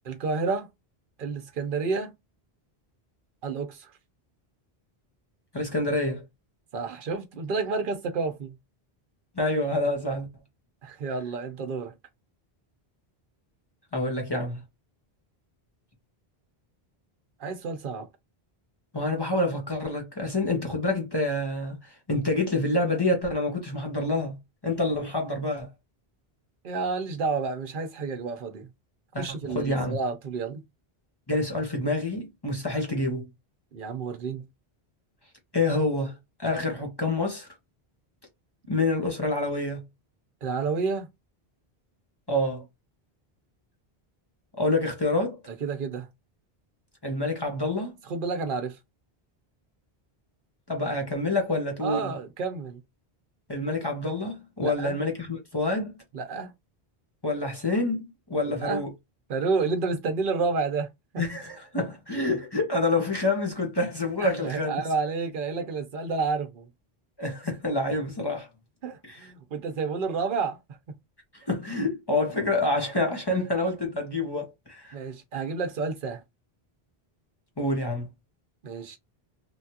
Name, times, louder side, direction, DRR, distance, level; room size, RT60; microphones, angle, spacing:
voice 1, 0.0-0.7 1.2-2.1 3.4-3.9 6.7-8.6 10.8-11.9 17.4-18.1 26.6-28.7 29.2-30.6 33.7-34.5 40.4-41.1 45.6-46.1 48.1-48.8 51.8-52.8 54.6-55.0 56.1-56.5 58.4-58.9 59.3-60.9 61.1-61.2 64.2-66.7 68.8-70.6 74.9-76.2 78.6-79.0, right 4 dB, 60° right, 0.9 m, -30 dB
voice 2, 5.5-6.2 9.4-10.3 13.9-14.6 18.9-24.4 24.6-25.7 29.1-30.0 31.3-33.3 35.5-37.5 38.7-39.8 42.3-42.6 44.6-45.4 47.0-47.9 50.7-52.1 53.5-55.9 57.2-58.9 61.2-64.8 67.2-68.5 69.0-69.3 71.3-74.9 77.6-78.1, left 2 dB, 25° left, 0.8 m, -27 dB
3.2 x 2.4 x 2.7 m
omnidirectional pair, 1.0 m